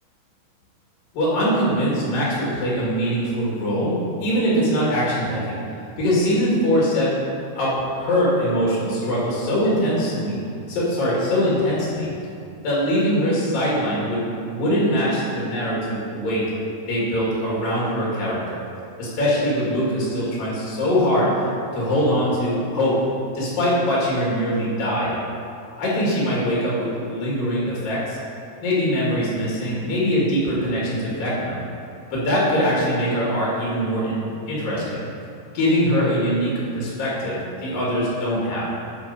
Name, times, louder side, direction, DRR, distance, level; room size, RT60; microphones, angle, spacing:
voice 1, 1.1-5.6 6.0-7.2 7.6-10.4 10.7-12.1 12.6-16.4 16.9-18.6 19.0-21.3 21.7-23.0 23.3-25.2 25.8-28.2 28.6-31.6 32.1-35.0 35.5-38.7, equal, 70° left, -6 dB, 4.0 m, -22 dB
11.5 x 4.9 x 4.2 m, 2.5 s
omnidirectional pair, 4.1 m